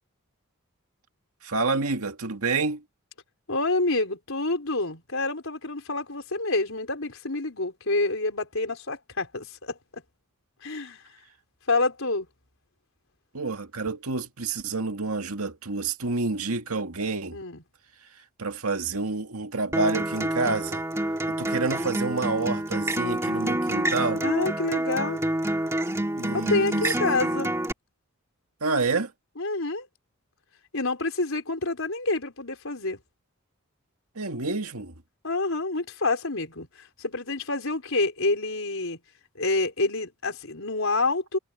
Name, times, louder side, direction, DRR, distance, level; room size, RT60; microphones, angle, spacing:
voice 1, 1.4-2.8 13.3-17.4 18.4-20.8 21.3-24.3 26.1-27.0 28.6-29.1 34.2-34.9, right 3 dB, 80° right, 2.1 m, -28 dB
voice 2, 3.5-10.0 10.6-11.0 11.7-12.3 17.3-17.6 24.2-25.2 26.3-27.5 29.4-29.9 30.7-33.0 35.2-39.0 39.3-41.4, left 2 dB, 65° left, 4.8 m, -28 dB
Acoustic guitar, 19.7-27.7, right 1 dB, 15° right, 2.2 m, -27 dB
head